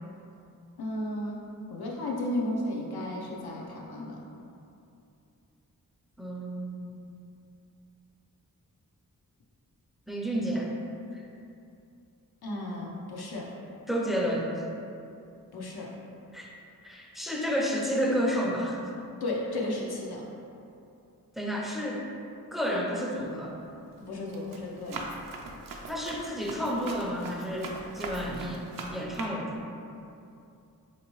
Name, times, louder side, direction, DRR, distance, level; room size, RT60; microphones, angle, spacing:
voice 1, 0.8-1.4 1.7-4.2 12.4-13.5 15.5-15.9 19.2-20.3 24.1-25.1, left 1 dB, 85° left, -2 dB, 0.6 m, -34 dB
voice 2, 6.2-6.9 10.1-10.7 11.1-11.2 13.9-14.5 16.3-16.5 16.8-18.8 21.4-22.0 22.5-23.6 25.9-28.6 28.9-29.6, equal, ahead, -2 dB, 0.4 m, -30 dB
Run, 23.2-23.5 24.0-29.3, right 2 dB, 65° right, 0.5 m, -41 dB
3.4 x 2.8 x 3.0 m, 2.6 s
wide cardioid pair, 65°, 37 cm